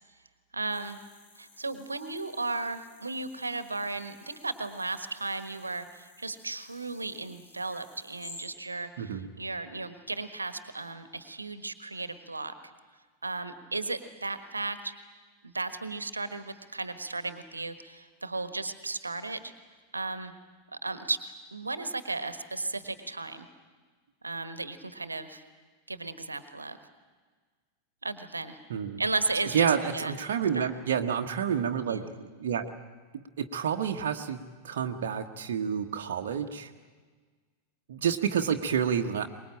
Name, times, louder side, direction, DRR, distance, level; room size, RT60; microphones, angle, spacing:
voice 1, 0.5-1.0 1.4-12.5 13.2-14.9 15.4-19.5 19.9-20.3 20.7-21.2 21.5-23.5 24.2-25.4 25.9-26.8 28.0-28.6 29.0-30.1 30.5-30.7 31.9-32.1, right 3 dB, 80° right, 11 dB, 1.4 m, -35 dB
sound 1, 0.7-8.4, left 3 dB, 55° left, 5.0 m, -54 dB
voice 2, 28.7-29.0 29.5-32.7 33.1-34.4 34.6-36.7 37.9-39.3, right 7 dB, 60° right, 3 dB, 1.2 m, -29 dB
24.0 x 21.0 x 8.8 m, 1.5 s
figure-of-eight pair, 90°, 0 cm